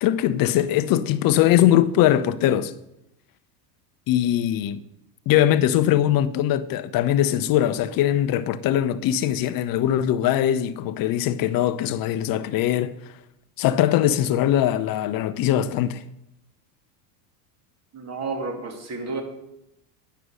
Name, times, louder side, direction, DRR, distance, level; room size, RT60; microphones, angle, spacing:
voice 1, 0.0-2.7 4.1-4.8 5.3-12.9 13.6-16.0, left 12 dB, 45° left, 0.8 m, -21 dB
voice 2, 17.9-19.2, right 3 dB, 35° right, 2.6 m, -31 dB
9.6 x 6.9 x 6.3 m
supercardioid pair, 100°, 47 cm